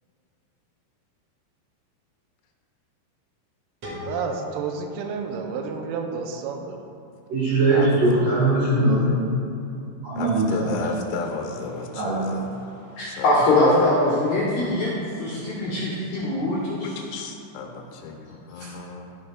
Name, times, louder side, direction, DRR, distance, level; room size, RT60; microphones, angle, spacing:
sound 1, 3.8-6.7, left 2 dB, 45° right, 2.2 m, -41 dB
voice 1, 4.0-6.8, right 5 dB, 85° right, 3 dB, 3.1 m, -30 dB
voice 2, 7.3-9.3 10.0-10.8 12.0-12.3, right 2 dB, 65° right, -8 dB, 2.3 m, -21 dB
voice 3, 10.1-12.5 13.0-13.3 16.8-19.1, left 4 dB, 90° left, 2 dB, 3.4 m, -33 dB
voice 4, 13.0-14.9 15.2-16.9 18.6-18.7, left 2 dB, 70° left, -9 dB, 2.2 m, -22 dB
15.5 x 6.5 x 2.3 m, 2.6 s
omnidirectional pair, 5.9 m